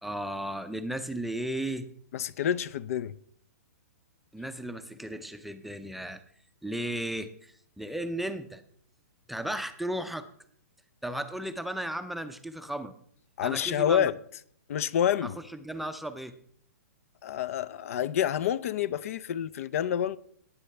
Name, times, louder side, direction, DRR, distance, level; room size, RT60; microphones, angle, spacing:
voice 1, 0.0-1.9 4.3-6.2 6.6-8.6 9.3-10.3 11.0-12.9 13.4-14.1 15.2-16.4, right 1 dB, ahead, 0.5 m, -35 dB
voice 2, 2.1-3.1 13.4-14.1 14.7-15.4 17.2-20.2, left 9 dB, 60° left, 0.5 m, -28 dB
17.5 x 8.4 x 3.3 m
hypercardioid pair, 140°, 9 cm